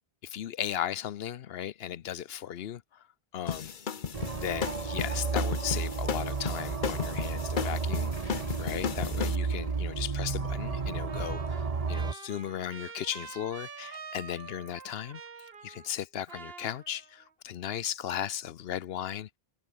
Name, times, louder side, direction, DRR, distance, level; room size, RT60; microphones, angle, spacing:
voice 1, 0.3-3.0 3.3-3.7 4.3-19.4, left 10 dB, 75° left, 0.9 m, -36 dB
sound 1, 3.5-9.4, left 7 dB, 55° left, 1.0 m, -34 dB
sound 2, 4.1-12.1, right 4 dB, 40° right, 1.1 m, -32 dB
Trumpet, 11.1-16.0 16.3-17.3, right 5 dB, 70° right, 1.6 m, -46 dB
omnidirectional pair, 1.0 m